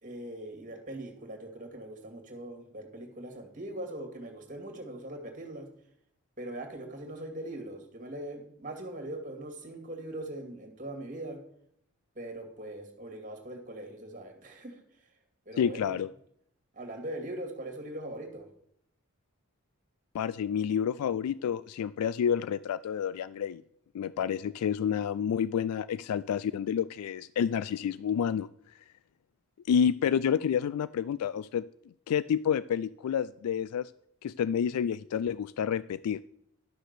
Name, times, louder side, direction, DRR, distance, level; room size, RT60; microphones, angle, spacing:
voice 1, 0.0-5.7 6.4-11.4 12.2-14.8 15.5-16.0 16.7-18.5, right 1 dB, 35° right, 4 dB, 2.2 m, -41 dB
voice 2, 15.6-16.1 20.1-23.6 23.9-28.5 29.7-31.6 32.1-33.9 34.2-36.2, left 8 dB, 90° left, 17 dB, 0.3 m, -29 dB
11.5 x 6.4 x 6.7 m, 0.70 s
head